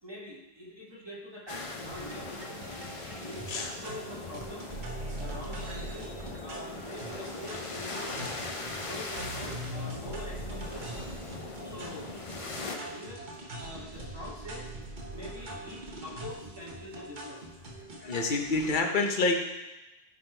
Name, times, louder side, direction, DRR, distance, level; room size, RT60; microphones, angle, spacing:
voice 1, 0.0-2.6 3.3-4.7 5.1-6.1 6.4-8.2 8.8-11.0 11.6-12.2 12.6-13.3 13.6-14.7 15.1-17.5, left 1 dB, 25° right, -5 dB, 1.8 m, -44 dB
sound 1, 1.5-12.8, left 3 dB, 35° left, 0.7 m, -41 dB
sound 2, 1.8-18.8, right 1 dB, 50° right, 1.3 m, -42 dB
voice 2, 18.0-19.4, left 3 dB, 55° left, 3 dB, 1.0 m, -27 dB
11.0 x 4.0 x 4.5 m, 1.0 s
omnidirectional pair, 1.1 m